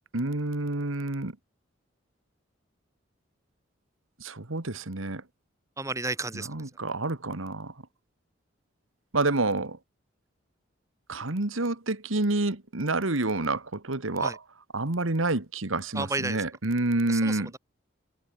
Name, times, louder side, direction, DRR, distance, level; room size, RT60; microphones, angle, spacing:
voice 1, 0.1-1.3 4.2-5.2 6.3-7.7 9.1-9.8 11.1-14.4 14.7-17.5, right 2 dB, 90° right, 1.9 m, -28 dB
voice 2, 5.8-6.5 14.2-14.4 15.9-16.4 17.1-17.6, right 3 dB, 15° right, 2.9 m, -32 dB
head